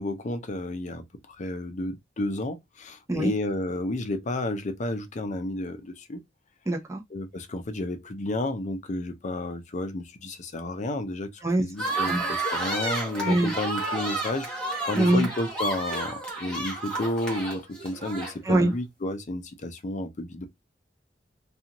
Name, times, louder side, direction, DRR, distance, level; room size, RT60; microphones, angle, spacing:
voice 1, 0.0-6.2 7.1-14.5 14.9-20.5, left 2 dB, 40° left, 0.5 m, -31 dB
voice 2, 6.7-7.0 11.4-12.2 13.2-13.5 14.9-15.3 18.4-18.7, right 1 dB, 15° right, 0.6 m, -24 dB
sound 1, 11.8-18.7, right 2 dB, 5° left, 1.1 m, -31 dB
2.5 x 2.3 x 2.9 m
head